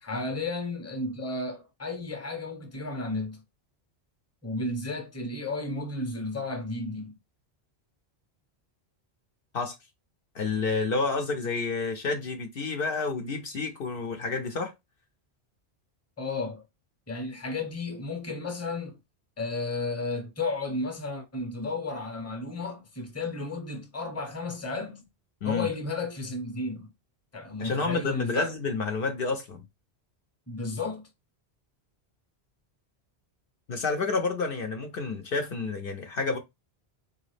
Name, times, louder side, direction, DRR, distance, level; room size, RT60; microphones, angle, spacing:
voice 1, 0.0-3.4 4.4-7.1 16.2-16.6 17.1-19.0 19.4-25.1 25.4-26.9 27.3-28.5 30.5-31.0, left 3 dB, 15° left, 0.8 m, -33 dB
voice 2, 10.3-14.7 25.4-25.7 27.6-29.6 33.7-36.4, left 4 dB, 65° left, 0.8 m, -29 dB
3.9 x 3.1 x 3.2 m
omnidirectional pair, 1.1 m